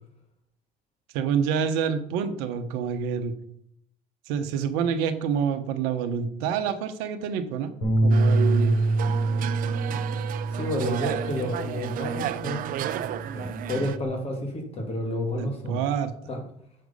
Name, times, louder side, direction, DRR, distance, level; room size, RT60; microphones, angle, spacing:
voice 1, 1.1-3.3 4.3-7.7 8.0-8.8 15.3-16.1, right 7 dB, 80° right, 10 dB, 1.0 m, -27 dB
Bass guitar, 7.8-12.3 12.7-14.1, right 2 dB, 85° left, 4.3 m, -26 dB
sound 1, 8.1-14.0, right 9 dB, 60° right, 0.6 m, -33 dB
voice 2, 10.5-12.7 13.3-15.8 16.3-16.4, left 1 dB, 40° left, 2 dB, 2.2 m, -30 dB
7.7 x 6.2 x 5.4 m, 0.69 s
hypercardioid pair, 70°, 16 cm